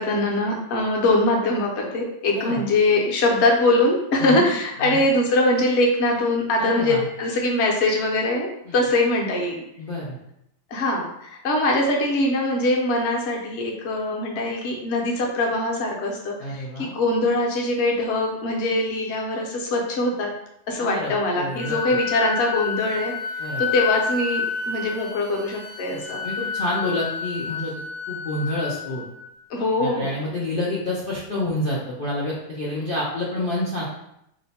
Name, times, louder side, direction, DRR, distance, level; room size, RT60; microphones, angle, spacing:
voice 1, 0.0-9.6 10.7-20.3 20.7-26.2 29.5-30.1, left 2 dB, 55° left, -1 dB, 0.8 m, -22 dB
voice 2, 2.4-2.7 4.2-4.5 4.8-5.0 6.6-7.0 8.7-8.8 9.8-10.2 16.4-16.9 20.8-21.7 23.4-23.6 26.2-27.7 28.1-29.0 29.8-33.8, left 1 dB, 75° left, -7 dB, 0.4 m, -28 dB
Wind instrument woodwind instrument, 21.5-29.3, left 6 dB, 75° right, 1.2 m, -30 dB
2.8 x 2.1 x 4.0 m, 0.79 s
omnidirectional pair, 1.7 m